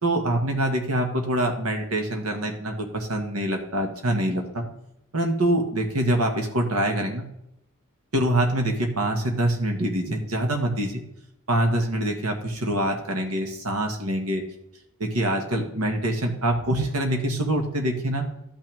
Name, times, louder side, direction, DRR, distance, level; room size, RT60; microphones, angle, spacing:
voice 1, 0.0-4.7 5.1-7.2 8.1-11.0 11.5-14.4 15.0-18.2, right 1 dB, 85° right, 3 dB, 1.8 m, -25 dB
12.5 x 6.2 x 3.5 m, 0.82 s
head